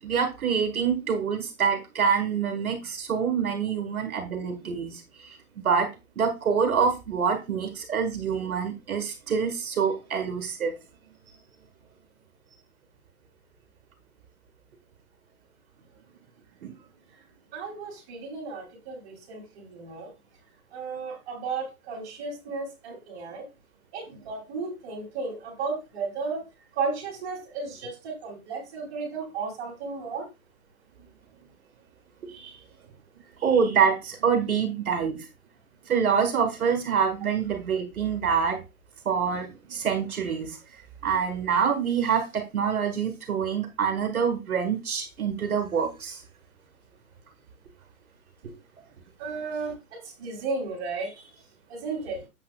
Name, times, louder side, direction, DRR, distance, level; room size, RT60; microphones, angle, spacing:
voice 1, 0.0-5.9 6.1-10.7 16.6-16.7 33.4-35.2 35.9-38.6 39.0-40.6 41.0-46.2, right 6 dB, 70° right, 6 dB, 1.7 m, -26 dB
voice 2, 17.5-20.1 20.7-23.5 23.9-26.4 26.7-30.3 32.3-32.6 49.2-51.4 51.7-52.2, right 4 dB, 20° right, -3 dB, 3.2 m, -34 dB
8.6 x 7.4 x 2.3 m, 0.26 s
hypercardioid pair, 165°, 45 cm